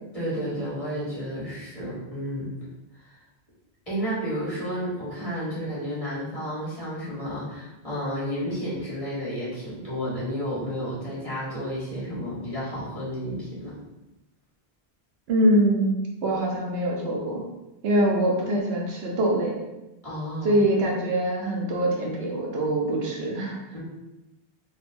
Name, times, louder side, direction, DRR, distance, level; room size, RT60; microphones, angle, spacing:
voice 1, 0.1-2.5 3.0-3.2 3.9-13.8 20.0-20.6 23.7-23.8, equal, 35° left, -9 dB, 1.4 m, -31 dB
voice 2, 15.3-15.9 16.2-17.4 17.8-19.5 20.4-23.6, right 1 dB, 75° right, -1 dB, 1.0 m, -23 dB
3.5 x 2.7 x 2.5 m, 0.97 s
omnidirectional pair, 1.1 m